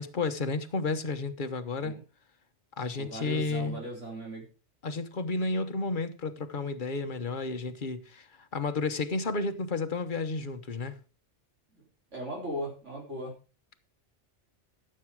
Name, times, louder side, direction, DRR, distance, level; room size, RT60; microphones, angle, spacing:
voice 1, 0.0-1.9 2.8-3.8 4.8-11.0, left 3 dB, 45° left, 1.2 m, -32 dB
voice 2, 3.0-4.4 12.1-13.3, equal, 80° right, 4.2 m, -37 dB
13.5 x 7.7 x 4.7 m
omnidirectional pair, 1.2 m